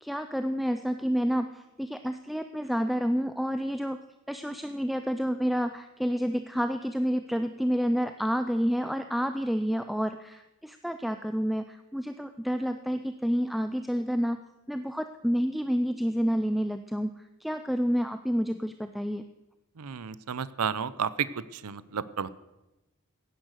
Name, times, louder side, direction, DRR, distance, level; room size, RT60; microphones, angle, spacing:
voice 1, 0.0-4.0 4.3-14.4 14.7-17.1 17.4-19.2, equal, ahead, 8 dB, 0.4 m, -29 dB
voice 2, 19.8-21.3 21.6-22.3, right 7 dB, 85° right, 18 dB, 0.6 m, -31 dB
16.0 x 10.0 x 6.5 m, 1.0 s
head